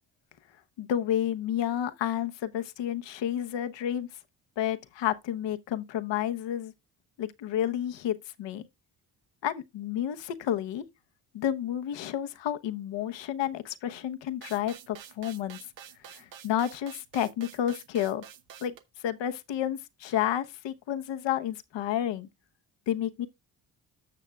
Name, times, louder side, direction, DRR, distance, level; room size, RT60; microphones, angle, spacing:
voice 1, 0.8-4.1 4.6-6.7 7.2-8.7 9.4-10.8 11.3-15.6 16.1-18.2 18.6-18.7 19.0-22.3 22.9-23.3, left 10 dB, 70° left, 1.0 m, -30 dB
sound 1, 14.4-18.8, right 9 dB, 70° right, 1.1 m, -48 dB
14.0 x 6.2 x 2.3 m
supercardioid pair, 65°, 46 cm